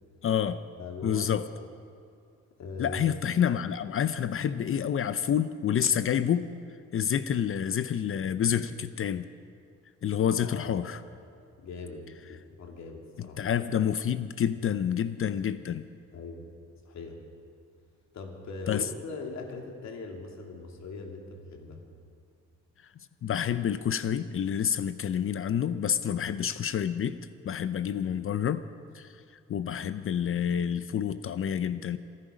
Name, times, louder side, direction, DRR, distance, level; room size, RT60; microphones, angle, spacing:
voice 1, 0.2-0.6 1.0-1.5 2.8-6.5 6.9-9.3 10.0-11.0 13.2-15.9 18.7-18.8 23.2-27.2 27.4-28.6 28.9-29.2 29.5-32.0, left 9 dB, 45° left, 13 dB, 0.6 m, -28 dB
voice 2, 0.8-1.4 2.6-3.2 10.4-10.8 11.6-13.4 16.1-16.4 16.9-17.2 18.1-21.8 26.1-26.2, left 3 dB, 65° left, 2 dB, 2.8 m, -40 dB
24.0 x 11.5 x 5.1 m, 2.3 s
cardioid pair, 90°, 30 cm